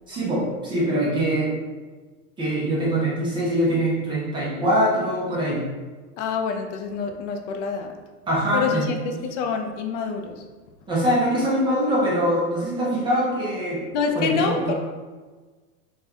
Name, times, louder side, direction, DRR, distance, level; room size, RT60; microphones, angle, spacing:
voice 1, 0.1-1.5 2.4-5.7 8.3-8.9 10.9-13.9 14.1-14.7, right 1 dB, 10° right, -7 dB, 0.5 m, -23 dB
voice 2, 6.2-7.9 8.5-10.4 13.9-14.7, left 5 dB, 60° left, 5 dB, 0.6 m, -26 dB
4.3 x 2.3 x 3.5 m, 1.3 s
supercardioid pair, 155°, 40 cm